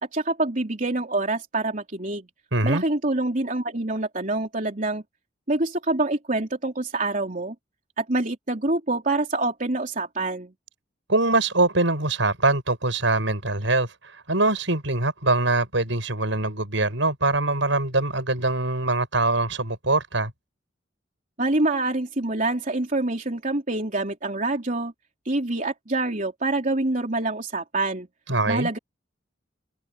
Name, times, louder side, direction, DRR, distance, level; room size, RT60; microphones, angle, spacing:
voice 1, 0.1-2.3 2.6-5.0 5.5-7.6 8.0-10.5 21.4-24.9 25.3-28.1 28.5-28.8, right 2 dB, 45° right, 3.5 m, -26 dB
voice 2, 2.5-2.8 11.1-13.9 14.3-20.3 28.3-28.7, right 2 dB, 75° right, 6.8 m, -23 dB
head